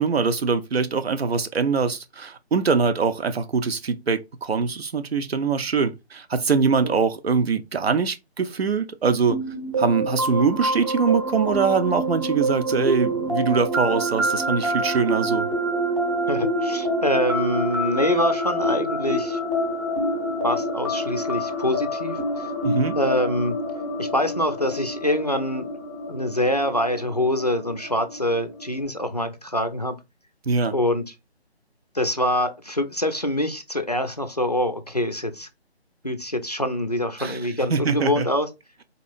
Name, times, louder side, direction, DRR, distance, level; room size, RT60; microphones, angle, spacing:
voice 1, 0.0-9.4 9.8-15.5 22.6-23.0 30.5-30.8 37.2-38.3, right 5 dB, 65° right, 0.7 m, -23 dB
sound 1, 9.3-28.8, equal, 30° right, 0.8 m, -27 dB
voice 2, 16.3-19.4 20.4-22.5 23.0-23.6 24.0-25.7 26.1-30.0 30.7-31.0 31.9-35.5 36.0-38.5, left 1 dB, 40° left, 0.4 m, -25 dB
4.1 x 3.0 x 2.4 m
hypercardioid pair, 175°, 33 cm